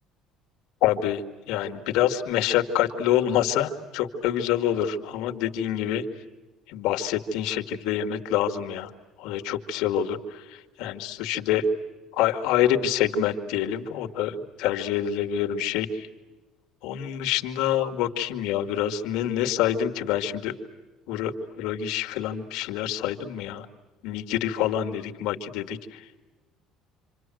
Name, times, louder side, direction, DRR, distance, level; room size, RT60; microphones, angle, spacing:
voice 1, 0.8-1.2 1.5-6.0 6.7-8.9 9.2-11.6 12.2-16.1 16.8-20.5 21.1-23.7 24.0-26.0, left 10 dB, 80° left, 5 dB, 2.2 m, -26 dB
28.0 x 26.5 x 7.9 m, 1.2 s
cardioid pair, 145°, 0 cm